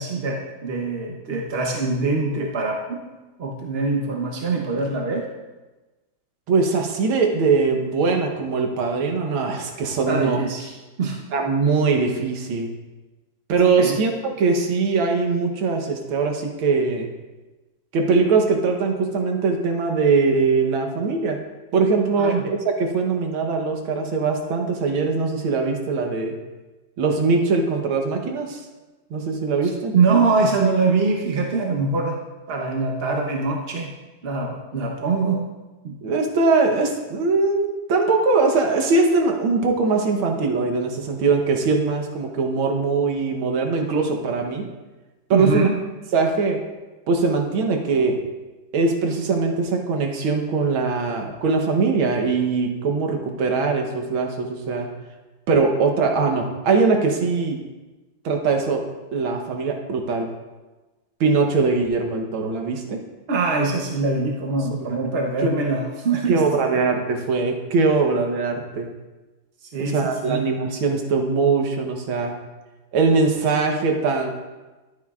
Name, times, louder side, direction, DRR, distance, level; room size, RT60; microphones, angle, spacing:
voice 1, 0.0-3.1 3.4-5.3 10.1-10.7 11.0-11.2 13.8-14.0 22.2-22.5 29.9-32.2 32.5-33.9 34.2-35.4 35.8-36.0 45.3-45.8 63.3-66.8 69.6-70.4, right 4 dB, 50° right, 0 dB, 0.7 m, -23 dB
voice 2, 6.5-10.4 11.3-12.7 13.5-17.1 17.9-21.4 21.7-26.4 27.0-28.6 29.1-29.9 36.0-44.7 45.3-45.7 46.1-46.6 47.1-48.2 48.7-54.9 55.5-57.6 58.3-58.8 59.1-60.3 61.2-63.0 64.7-65.0 65.4-65.6 66.3-68.9 69.8-72.3 72.9-74.3, right 4 dB, 85° right, 3 dB, 1.9 m, -21 dB
12.0 x 8.9 x 2.4 m, 1.2 s
omnidirectional pair, 2.2 m